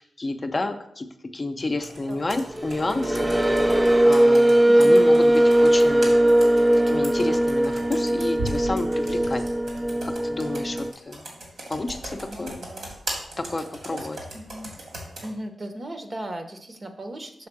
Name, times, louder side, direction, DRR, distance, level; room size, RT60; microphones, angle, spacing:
voice 1, 0.2-3.3 4.0-6.1 6.9-9.4 10.0-11.3 11.7-12.6 13.4-14.2, left 2 dB, 35° left, 6 dB, 0.6 m, -30 dB
Computer keyboard, 1.8-15.3, right 1 dB, 75° right, 2.2 m, -38 dB
sound 1, 2.5-10.9, right 1 dB, 15° right, 0.4 m, -19 dB
voice 2, 4.7-5.0 12.1-12.9 13.9-14.1 14.3-14.7 15.2-17.5, right 1 dB, 40° right, 6 dB, 0.9 m, -37 dB
6.6 x 3.5 x 5.9 m, 0.74 s
cardioid pair, 75°, 0 cm